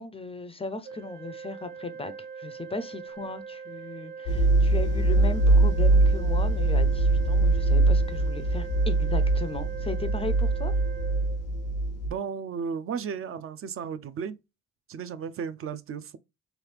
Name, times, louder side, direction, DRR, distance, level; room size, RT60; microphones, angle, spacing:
voice 1, 0.0-10.7, left 3 dB, 20° left, 0.4 m, -36 dB
Organ, 0.8-11.9, right 6 dB, 90° right, 0.7 m, -42 dB
sound 1, 4.3-12.1, right 2 dB, 90° left, 0.7 m, -23 dB
voice 2, 12.0-14.4 14.9-16.2, right 6 dB, 45° right, 0.4 m, -34 dB
3.2 x 2.4 x 3.2 m
cardioid pair, 90°, 30 cm